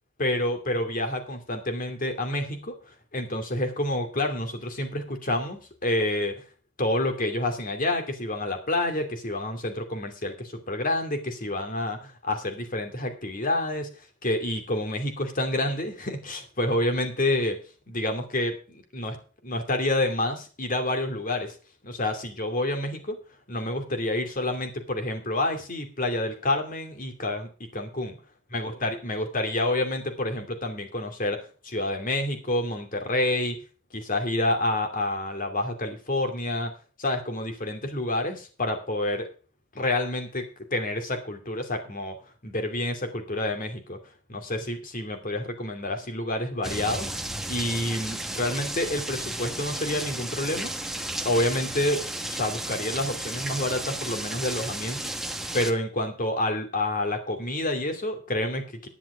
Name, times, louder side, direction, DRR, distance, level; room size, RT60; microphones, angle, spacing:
voice 1, 0.2-6.4 6.8-13.9 14.2-17.6 17.9-19.2 19.4-21.6 21.8-23.2 23.5-28.2 28.5-33.6 33.9-36.7 37.0-39.3 39.7-40.4 40.7-42.2 42.4-44.0 44.3-47.1 47.5-50.7 51.2-55.1 55.5-58.9, left 1 dB, 40° left, 6 dB, 2.6 m, -28 dB
sound 1, 46.6-55.7, right 1 dB, ahead, 1.1 m, -33 dB
10.5 x 10.0 x 5.0 m, 0.36 s
head